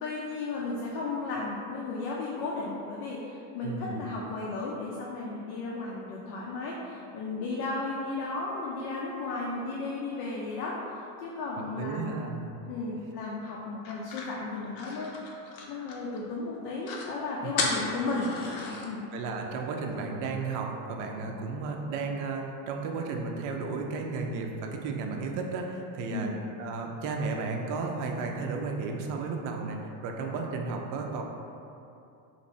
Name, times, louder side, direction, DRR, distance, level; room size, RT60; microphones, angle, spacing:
voice 1, 0.0-10.8 11.2-12.2 12.7-15.1 15.7-18.3 18.6-19.0 26.1-26.4, left 3 dB, 90° left, -4 dB, 0.7 m, -34 dB
voice 2, 3.6-4.0 11.6-12.5 17.4-17.5 19.1-26.3 26.6-31.2, right 4 dB, 45° right, 2 dB, 0.4 m, -33 dB
sound 1, 13.8-16.2 16.5-16.6 16.8-17.1 17.6-18.9, left 3 dB, 50° left, 0.6 m, -34 dB
2.9 x 2.6 x 4.1 m, 2.8 s
cardioid pair, 140°, 45 cm